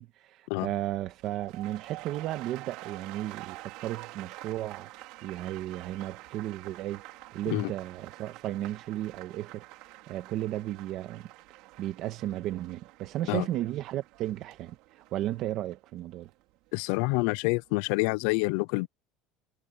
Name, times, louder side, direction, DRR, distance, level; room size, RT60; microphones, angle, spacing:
voice 1, 0.0-4.9 5.2-7.0 7.3-9.7 10.1-11.3 11.8-14.8 15.1-16.3, right 13 dB, 45° right, 1.7 m, -34 dB
sound 1, 1.1-17.1 17.4-17.9, right 20 dB, 60° right, 4.0 m, -48 dB
voice 2, 16.7-18.9, left 26 dB, 65° left, 0.4 m, -27 dB
cardioid pair, 170°, 0 cm